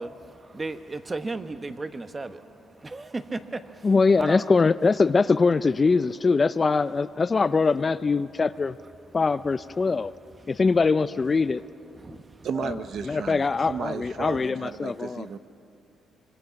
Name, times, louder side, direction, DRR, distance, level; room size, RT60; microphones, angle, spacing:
voice 1, 0.0-4.4 5.5-5.7 9.8-9.9 10.4-10.5 11.9-12.5, right 3 dB, 25° right, 1.2 m, -36 dB
voice 2, 3.8-8.7 9.1-10.1 10.5-11.6 13.1-15.3, left 4 dB, 30° left, 0.5 m, -22 dB
voice 3, 12.4-15.4, right 7 dB, 65° right, 0.9 m, -34 dB
25.5 x 24.5 x 5.9 m
cardioid pair, 90°, 0 cm